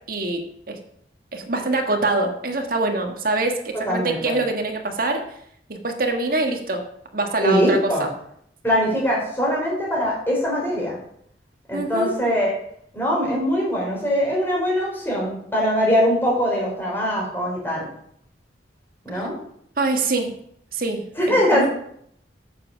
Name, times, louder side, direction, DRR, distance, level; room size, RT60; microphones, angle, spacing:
voice 1, 0.1-0.4 0.7-0.8 1.3-5.2 5.7-6.8 7.1-7.8 11.7-12.1 19.8-20.3 20.7-21.0 21.3-21.7, right 2 dB, 50° right, 3 dB, 1.7 m, -24 dB
voice 2, 3.9-4.4 7.4-8.1 8.6-11.0 11.7-12.5 12.9-17.9 19.0-19.3 21.2-21.7, equal, 10° left, -4 dB, 4.1 m, -22 dB
8.8 x 7.3 x 6.4 m, 0.69 s
head